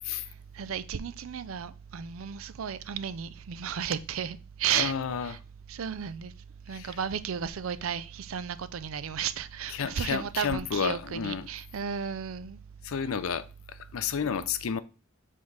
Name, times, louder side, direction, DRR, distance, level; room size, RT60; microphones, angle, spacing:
voice 1, 0.6-4.9 5.2-5.4 5.7-6.3 6.7-12.6, right 8 dB, 70° right, 0.4 m, -33 dB
voice 2, 4.7-5.4 6.7-7.0 9.7-11.5 12.8-14.8, left 7 dB, 70° left, 0.5 m, -31 dB
6.6 x 3.6 x 3.9 m
head